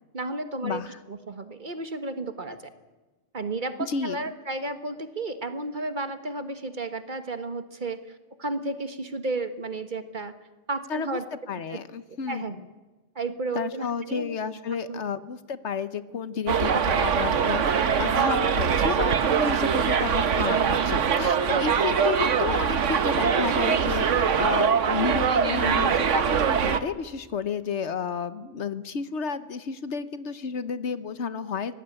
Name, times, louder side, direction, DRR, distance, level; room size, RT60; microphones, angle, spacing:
voice 1, 0.1-0.8 1.1-2.7 3.3-10.3 10.7-11.2 11.7-11.8 12.3-12.5 13.1-14.3 14.9-15.0 19.6-19.7 21.5-21.8, right 2 dB, 40° right, 9 dB, 1.6 m, -33 dB
voice 2, 3.9-4.2 10.9-11.2 11.5-12.5 13.5-31.8, left 6 dB, 70° left, 13 dB, 1.3 m, -31 dB
Subway metro underground, 16.5-26.8, right 7 dB, 80° right, 1.4 m, -23 dB
24.0 x 18.5 x 8.8 m, 1.2 s
omnidirectional pair, 1.2 m